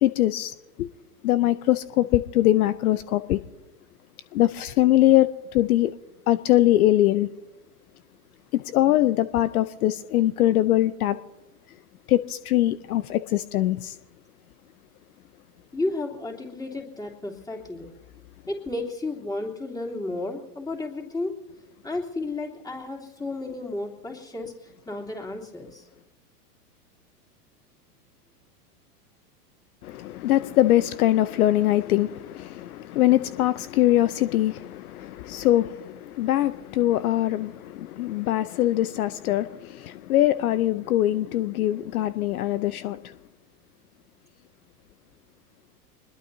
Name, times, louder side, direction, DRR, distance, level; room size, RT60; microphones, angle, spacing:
voice 1, 0.0-0.9 1.2-3.4 4.3-6.0 6.3-7.3 8.5-11.2 12.1-14.0 29.8-43.1, left 14 dB, 65° left, 0.7 m, -22 dB
voice 2, 15.7-17.9 18.5-21.3 21.8-25.9, left 2 dB, 10° left, 3.2 m, -32 dB
24.0 x 21.0 x 2.8 m
hypercardioid pair, 105°, 47 cm